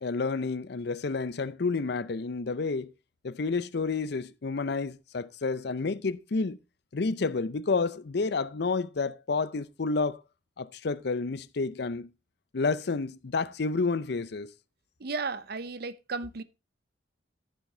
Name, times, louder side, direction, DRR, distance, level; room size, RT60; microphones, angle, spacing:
voice 1, 0.0-2.9 3.2-6.6 6.9-10.2 10.6-12.1 12.5-14.5, left 4 dB, 60° left, 0.5 m, -30 dB
voice 2, 15.0-16.4, right 4 dB, 55° right, 0.7 m, -34 dB
15.0 x 5.7 x 3.8 m
head